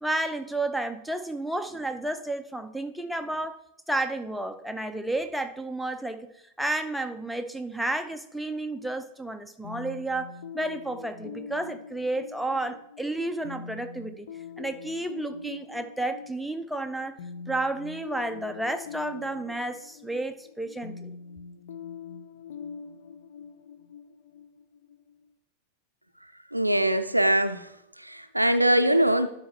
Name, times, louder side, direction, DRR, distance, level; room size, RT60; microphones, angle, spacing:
voice 1, 0.0-3.6 3.9-6.3 6.6-14.3 14.6-17.2 17.5-21.1, right 2 dB, ahead, 8 dB, 0.6 m, -31 dB
sound 1, 9.6-25.2, left 6 dB, 60° left, 0.5 m, -43 dB
voice 2, 26.5-27.7 28.0-29.3, right 1 dB, 85° right, 10 dB, 0.4 m, -22 dB
11.5 x 5.2 x 3.1 m, 0.80 s
figure-of-eight pair, 90°, 0 cm